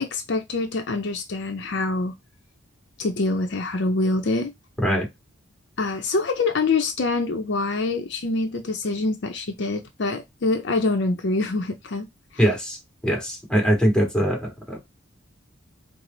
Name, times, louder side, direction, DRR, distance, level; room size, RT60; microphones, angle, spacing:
voice 1, 0.0-2.2 3.0-4.5 5.8-12.1, left 3 dB, 55° left, 0.5 m, -25 dB
voice 2, 12.4-12.8 13.0-14.8, equal, 5° left, 1.7 m, -22 dB
4.7 x 2.0 x 3.8 m
head